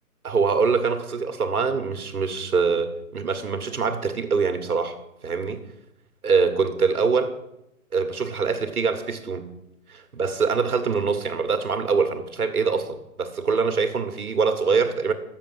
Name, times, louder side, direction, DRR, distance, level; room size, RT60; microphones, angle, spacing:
voice 1, 0.2-5.6 6.2-7.3 7.9-9.5 9.9-15.1, right 5 dB, 80° right, 1.5 m, -24 dB
7.7 x 6.8 x 7.8 m
hypercardioid pair, 165°, 43 cm